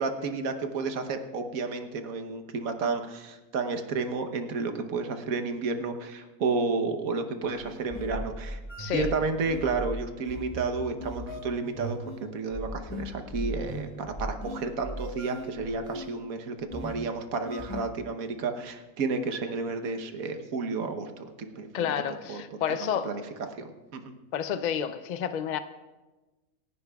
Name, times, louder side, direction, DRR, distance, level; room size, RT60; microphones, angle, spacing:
voice 1, 0.0-8.6 8.9-12.0 12.3-22.4 22.7-23.2 23.5-24.1, right 4 dB, 70° right, 6 dB, 1.4 m, -31 dB
sound 1, 7.4-17.8, equal, 20° left, 1.5 m, -38 dB
voice 2, 21.7-23.1 24.3-25.6, left 8 dB, 85° left, 10 dB, 0.4 m, -30 dB
27.0 x 11.0 x 2.3 m, 1.2 s
omnidirectional pair, 1.5 m